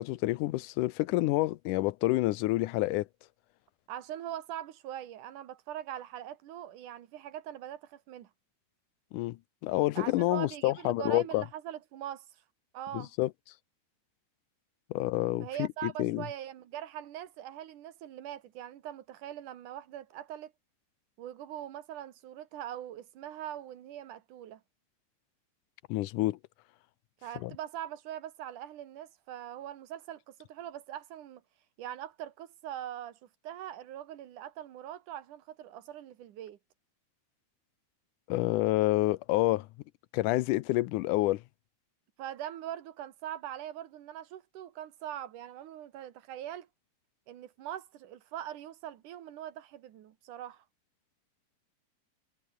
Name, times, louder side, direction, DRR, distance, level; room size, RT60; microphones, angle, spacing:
voice 1, 0.0-3.1 9.1-11.4 12.9-13.3 14.9-16.2 25.9-26.4 27.4-27.5 38.3-39.7 40.1-41.4, left 18 dB, 90° left, 2.3 m, -28 dB
voice 2, 3.9-8.3 10.0-12.4 12.7-13.1 15.4-20.5 21.2-24.6 27.2-31.4 31.8-36.6 42.2-46.7 47.3-50.6, right 11 dB, 85° right, 3.0 m, -42 dB
omnidirectional pair, 3.5 m